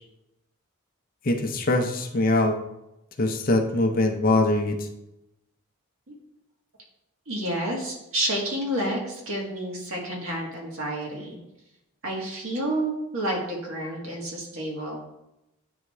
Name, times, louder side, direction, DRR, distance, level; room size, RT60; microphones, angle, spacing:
voice 1, 1.2-2.6 3.2-4.9, left 2 dB, 40° left, 5 dB, 0.6 m, -23 dB
voice 2, 7.3-11.4 12.0-15.0, right 1 dB, 65° right, -2 dB, 1.7 m, -30 dB
9.4 x 3.5 x 3.2 m, 0.89 s
head